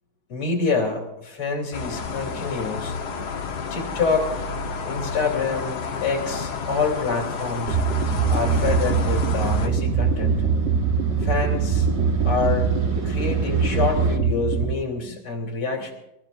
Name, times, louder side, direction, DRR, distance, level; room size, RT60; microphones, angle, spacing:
voice 1, 0.3-2.9 3.7-4.5 4.8-7.8 8.3-10.5 11.3-11.9 12.2-12.7 13.0-15.9, left 4 dB, 85° left, 1 dB, 3.7 m, -26 dB
sound 1, 1.7-9.7, left 5 dB, 55° left, 1.5 m, -30 dB
sound 2, 7.7-14.7, right 6 dB, 45° right, 1.0 m, -22 dB
Motorcycle, 8.6-14.2, right 2 dB, 20° right, 0.9 m, -33 dB
27.0 x 14.0 x 2.6 m, 0.88 s
omnidirectional pair, 2.4 m